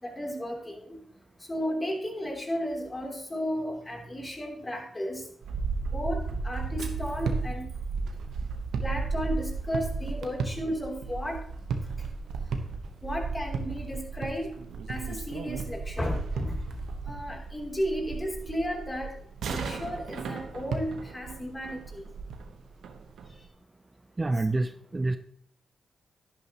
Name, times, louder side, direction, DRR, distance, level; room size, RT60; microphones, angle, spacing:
voice 1, 0.0-1.0 1.5-5.2 5.9-6.2 6.4-7.7 8.8-11.4 13.0-14.5 14.9-16.8 17.1-19.1 19.5-22.0, equal, 25° left, 1 dB, 3.1 m, -33 dB
sound 1, 5.4-23.5, right 4 dB, 80° right, 1.1 m, -34 dB
voice 2, 24.2-25.2, right 2 dB, 30° right, 10 dB, 0.5 m, -27 dB
10.5 x 10.0 x 3.0 m, 0.63 s
supercardioid pair, 50°, 0 cm